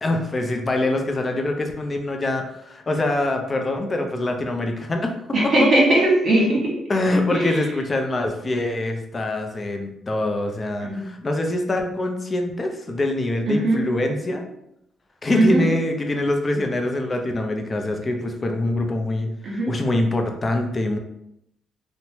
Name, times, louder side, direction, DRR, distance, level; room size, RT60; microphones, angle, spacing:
voice 1, 0.0-5.1 5.4-5.7 6.9-14.4 15.2-21.0, left 2 dB, 30° left, 4 dB, 0.5 m, -24 dB
voice 2, 5.3-6.7 7.3-7.5 10.8-11.0 13.5-13.8 15.3-15.6 19.4-19.7, right 1 dB, 50° right, -3 dB, 1.2 m, -19 dB
3.0 x 2.0 x 2.8 m, 0.79 s
cardioid pair, 90°, 0 cm